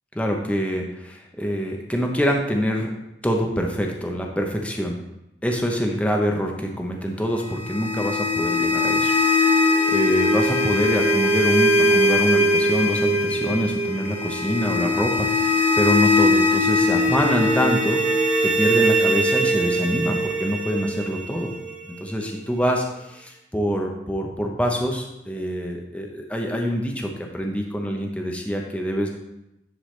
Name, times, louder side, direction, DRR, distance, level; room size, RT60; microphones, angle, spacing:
voice 1, 0.1-2.9 3.2-5.0 5.4-9.1 9.4-18.0 18.4-21.6 21.9-29.1, equal, 5° left, 1 dB, 0.7 m, -25 dB
sound 1, 7.4-22.4, left 1 dB, 10° right, 1.2 m, -21 dB
10.0 x 4.9 x 3.2 m, 0.89 s
head